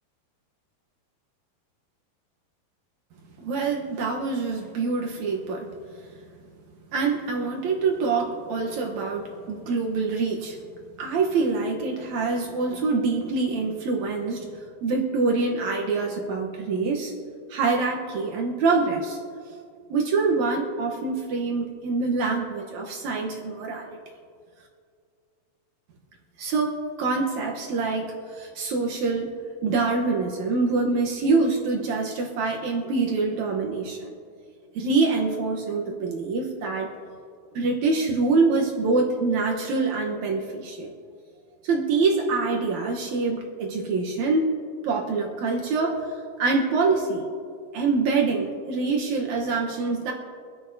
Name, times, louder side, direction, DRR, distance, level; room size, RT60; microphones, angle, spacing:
voice 1, 3.4-5.7 6.9-10.6 11.0-14.5 14.8-17.1 17.5-19.2 19.9-24.0 26.4-29.3 29.6-34.1 34.7-36.9 37.5-40.9 41.6-44.5 44.8-46.1 46.4-47.2 47.7-50.1, right 4 dB, 80° right, 0 dB, 1.6 m, -25 dB
25.0 x 10.5 x 2.7 m, 2.2 s
omnidirectional pair, 4.8 m